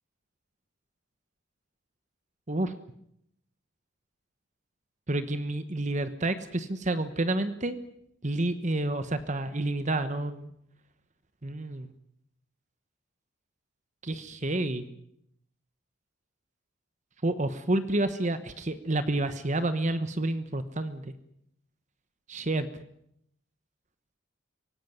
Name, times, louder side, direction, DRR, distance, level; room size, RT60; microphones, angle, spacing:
voice 1, 5.1-7.8 8.2-10.5 11.4-11.9 14.0-14.8 17.2-21.1 22.3-22.7, right 2 dB, 35° right, 11 dB, 1.1 m, -29 dB
24.0 x 18.0 x 9.4 m, 0.75 s
head